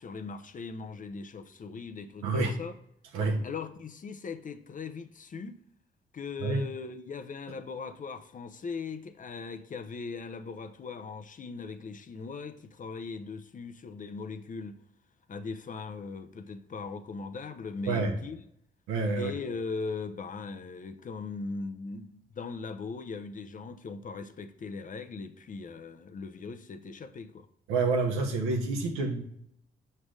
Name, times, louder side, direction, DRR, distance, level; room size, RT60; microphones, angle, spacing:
voice 1, 0.0-2.7 3.4-5.6 6.1-14.8 15.3-18.4 19.1-27.5, left 4 dB, 40° left, 0.6 m, -39 dB
voice 2, 2.2-2.6 3.1-3.5 6.4-6.6 17.9-18.2 18.9-19.3 27.7-29.2, right 3 dB, 85° right, 0.9 m, -28 dB
6.1 x 3.3 x 4.8 m
hypercardioid pair, 45°, 21 cm